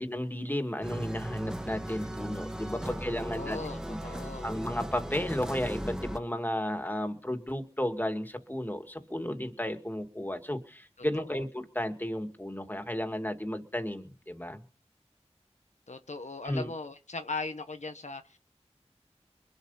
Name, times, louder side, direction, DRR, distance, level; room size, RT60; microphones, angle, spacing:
voice 1, 0.0-4.0 4.4-14.6 16.4-16.7, left 1 dB, 15° left, 6 dB, 2.1 m, -33 dB
sound 1, 0.8-6.2, right 1 dB, 5° right, 1.3 m, -37 dB
voice 2, 2.8-4.5 11.2-11.4 15.9-18.4, left 3 dB, 85° left, 8 dB, 1.0 m, -39 dB
23.5 x 8.0 x 5.5 m, 0.40 s
wide cardioid pair, 45°, 12 cm